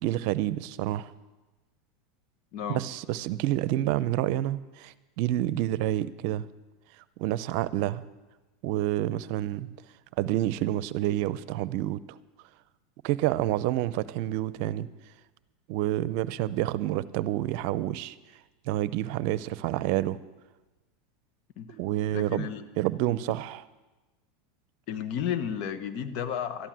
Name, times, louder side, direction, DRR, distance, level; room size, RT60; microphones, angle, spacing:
voice 1, 0.0-1.1 2.7-6.5 7.2-8.0 8.6-9.7 10.2-12.0 13.0-14.9 15.7-18.1 18.7-20.2 21.7-22.5 22.8-23.6, right 14 dB, 60° right, 18 dB, 0.6 m, -28 dB
voice 2, 2.5-2.8 21.6-21.7 22.1-22.6 24.9-26.7, left 8 dB, 55° left, 11 dB, 1.2 m, -32 dB
13.0 x 11.0 x 7.5 m, 1.2 s
hypercardioid pair, 95°, 0 cm